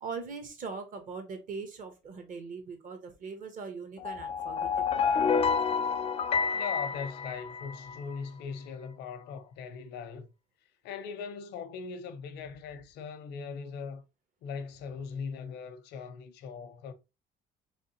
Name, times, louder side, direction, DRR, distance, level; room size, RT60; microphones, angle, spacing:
voice 1, 0.0-5.1, right 5 dB, 55° right, 1.1 m, -41 dB
sound 1, 4.0-8.0, left 6 dB, 35° left, 0.4 m, -29 dB
voice 2, 6.5-10.3 10.8-14.0 14.4-16.9, left 6 dB, 80° left, 0.6 m, -40 dB
3.4 x 3.2 x 2.8 m
cardioid pair, 110°, 17 cm